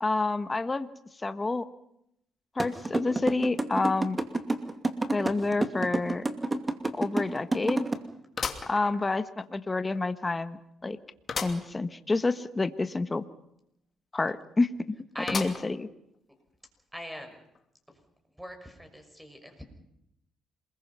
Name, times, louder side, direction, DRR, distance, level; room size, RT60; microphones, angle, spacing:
voice 1, 0.0-0.9 1.2-1.7 2.6-4.2 5.1-6.2 6.9-7.9 8.7-11.0 11.4-13.2 14.1-14.7 15.3-15.9, left 3 dB, 25° left, 11 dB, 1.3 m, -28 dB
sound 1, 2.6-7.9, right 2 dB, 20° right, 2.5 m, -28 dB
sound 2, 6.1-6.2 6.7-6.8 8.4-9.5 10.0-10.1 11.3-11.7 12.1-12.2 12.4-12.5 15.3-15.9 16.5-16.6 17.6-17.7, left 5 dB, 45° left, 2.7 m, -35 dB
voice 2, 8.4-8.7 15.1-15.4 16.9-17.4 17.9-18.0 18.4-19.6, equal, 5° right, 5 dB, 6.2 m, -41 dB
27.5 x 21.5 x 5.6 m, 0.78 s
cardioid pair, 90°, 0 cm